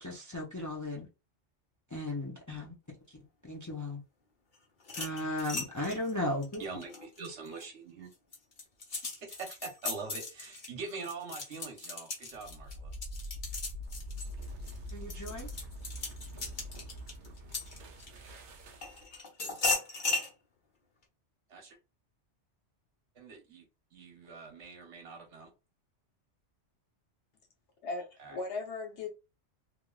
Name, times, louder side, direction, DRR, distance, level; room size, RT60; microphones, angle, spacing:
voice 1, 0.0-1.1 1.9-2.7 3.1-4.0 5.0-6.6 14.9-15.5, left 1 dB, 25° left, 0.4 m, -36 dB
sound 1, 4.8-7.6 8.1-18.3 18.8-20.3, left 3 dB, 45° left, 1.0 m, -37 dB
voice 2, 6.6-8.1 9.0-12.9 21.5-21.8 23.1-23.6 23.9-25.5 28.2-28.4, right 4 dB, 75° right, 1.3 m, -44 dB
sound 2, 12.3-19.2, equal, 55° right, 0.6 m, -44 dB
voice 3, 27.8-29.1, left 3 dB, 75° left, 1.1 m, -37 dB
3.2 x 2.4 x 2.3 m
omnidirectional pair, 1.2 m